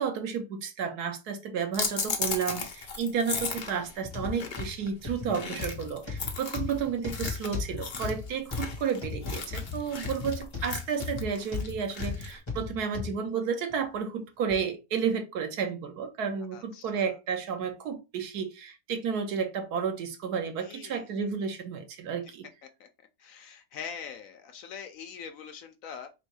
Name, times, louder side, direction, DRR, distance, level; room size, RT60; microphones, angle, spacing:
voice 1, 0.0-22.5, right 6 dB, 80° right, 1.3 m, -32 dB
sound 1, 1.7-12.4, left 4 dB, 40° left, 0.7 m, -36 dB
sound 2, 4.0-13.2 13.7-13.8 14.5-14.6, left 5 dB, 20° left, 1.2 m, -36 dB
voice 2, 16.5-17.2 20.6-21.1 22.2-22.3 22.6-26.1, left 7 dB, 65° left, 0.9 m, -43 dB
3.7 x 2.6 x 4.7 m
omnidirectional pair, 1.7 m